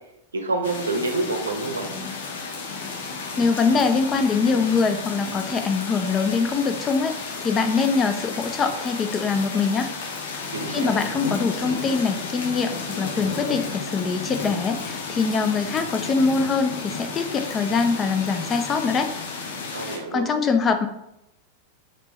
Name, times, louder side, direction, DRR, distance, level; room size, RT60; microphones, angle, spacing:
voice 1, 0.3-1.9 10.5-11.0 19.7-20.3, right 3 dB, 75° right, 4 dB, 0.6 m, -27 dB
sound 1, 0.6-20.0, left 4 dB, 60° left, 0.7 m, -33 dB
voice 2, 3.4-9.9 10.7-19.1 19.8-20.9, left 4 dB, 25° left, 8 dB, 0.4 m, -23 dB
4.4 x 2.9 x 3.0 m, 0.83 s
figure-of-eight pair, 90°, 0 cm